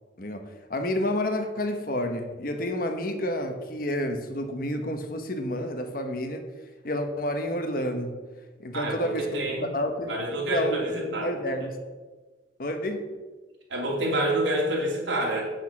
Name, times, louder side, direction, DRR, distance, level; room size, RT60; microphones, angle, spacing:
voice 1, 0.2-6.4 6.8-8.2 8.6-11.8 12.6-13.2, left 1 dB, 50° left, 6 dB, 1.0 m, -30 dB
voice 2, 8.7-9.7 10.1-11.3 13.7-15.5, right 1 dB, 80° right, -2 dB, 2.7 m, -27 dB
8.6 x 6.4 x 6.0 m, 1.3 s
head